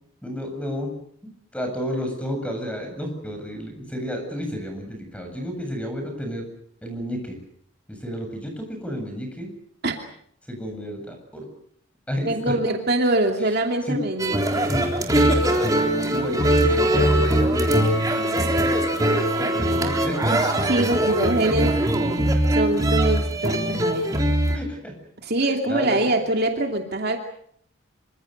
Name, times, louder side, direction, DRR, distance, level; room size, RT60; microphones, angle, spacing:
voice 1, 0.2-0.9 1.2-6.5 6.8-7.4 7.9-9.5 10.5-11.5 12.1-12.3 13.9-14.0 14.7-18.6 19.4-20.4 24.5-24.9 25.7-26.0, equal, 5° left, 4 dB, 7.9 m, -32 dB
voice 2, 12.2-14.7 20.7-21.8 22.5-24.2 25.2-27.2, right 2 dB, 50° right, 3 dB, 2.7 m, -24 dB
sound 1, 14.2-24.6, right 1 dB, 15° right, 3.8 m, -21 dB
26.5 x 25.5 x 6.7 m, 0.67 s
head